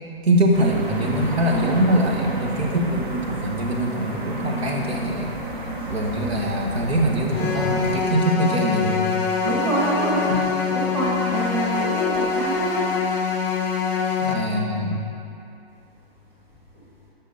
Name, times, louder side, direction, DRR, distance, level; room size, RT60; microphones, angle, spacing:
voice 1, 0.2-5.3 5.9-9.1 10.3-10.4 14.2-15.0, right 1 dB, 75° right, 0 dB, 1.7 m, -23 dB
sound 1, 0.5-8.0, right 1 dB, 50° right, 1.5 m, -31 dB
sound 2, 7.3-14.3, left 5 dB, 10° left, 0.6 m, -24 dB
voice 2, 9.4-10.3 10.7-12.8, right 2 dB, 10° right, -8 dB, 1.7 m, -25 dB
13.5 x 6.4 x 4.2 m, 2.7 s
hypercardioid pair, 155°, 32 cm